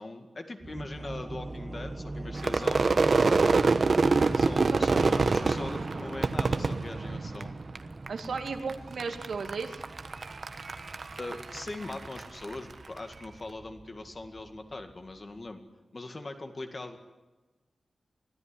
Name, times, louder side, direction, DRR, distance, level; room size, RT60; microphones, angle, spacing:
voice 1, 0.0-3.2 4.4-7.5 11.2-15.6 15.9-17.0, left 2 dB, 30° left, 6 dB, 2.1 m, -41 dB
Cave Tribal song, 0.6-15.5, right 2 dB, 25° right, 1.3 m, -41 dB
Crowd / Fireworks, 2.4-7.8 8.1-8.7 9.0-12.5, right 4 dB, 45° right, 1.1 m, -26 dB
voice 2, 4.7-5.1 8.1-9.8, right 5 dB, 75° right, 5 dB, 2.1 m, -35 dB
24.5 x 16.5 x 9.9 m, 1.2 s
wide cardioid pair, 170°, 0 cm